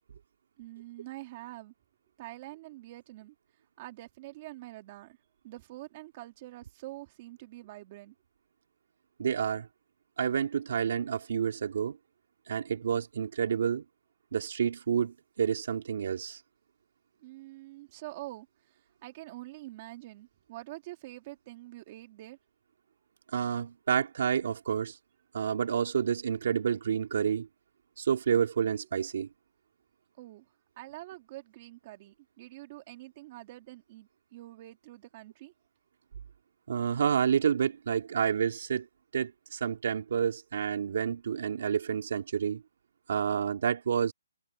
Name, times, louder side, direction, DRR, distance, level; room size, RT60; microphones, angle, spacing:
voice 1, 0.6-1.7 2.2-3.3 3.8-5.2 5.4-8.1 17.2-22.4 30.2-35.5, right 17 dB, 25° right, 3.2 m, -46 dB
voice 2, 9.2-9.7 10.2-12.0 12.5-13.8 14.3-16.4 23.3-25.0 25.3-27.5 28.0-29.3 36.7-38.9 39.1-42.6 43.1-44.1, right 7 dB, 45° right, 3.0 m, -29 dB
hypercardioid pair, 175°, 0 cm